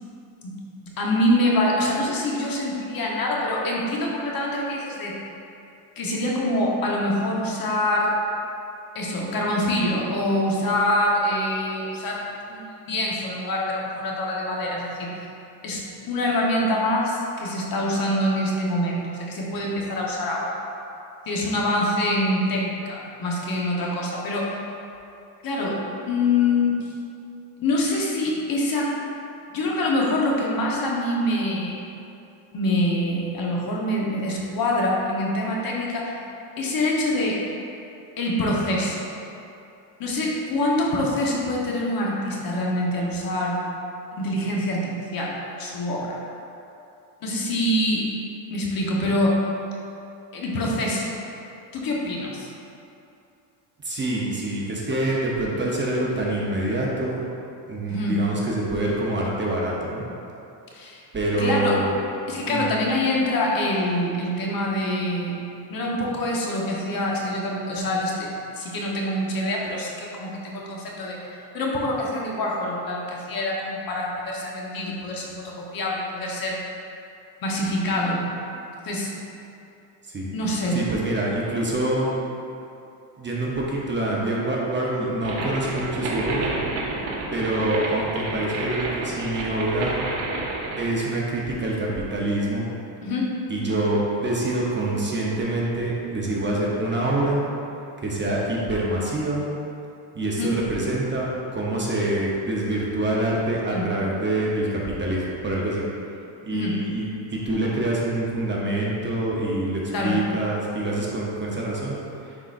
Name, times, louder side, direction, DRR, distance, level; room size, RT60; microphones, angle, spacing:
voice 1, 0.4-5.2 6.0-8.2 8.9-15.2 15.6-20.5 21.3-24.6 25.4-25.8 26.0-26.8 27.6-28.9 29.5-31.8 32.5-36.2 36.6-37.4 38.2-39.1 40.0-43.6 44.1-46.2 47.2-48.1 48.5-49.4 50.3-51.1 51.7-52.5 57.8-58.2 60.7-61.0 61.4-61.8 62.3-65.4 65.7-68.3 68.6-71.2 71.5-76.6 77.4-78.2 78.8-79.1 80.3-80.8 93.0-93.4 100.4-100.6 103.7-103.9 106.5-106.8 109.9-110.2, left 1 dB, 45° left, -3 dB, 1.1 m, -25 dB
voice 2, 53.8-57.2 57.7-60.0 61.1-61.9 62.4-62.7 80.0-80.3 80.7-82.2 83.2-86.6 87.3-90.0 90.8-92.7 93.5-97.4 98.0-99.4 100.1-105.8 106.4-112.0 112.2-112.4, right 1 dB, 25° right, -4 dB, 0.8 m, -26 dB
sound 1, 85.2-90.9, right 2 dB, 75° right, 1.1 m, -30 dB
9.7 x 3.9 x 2.5 m, 2.7 s
cardioid pair, 120°, 48 cm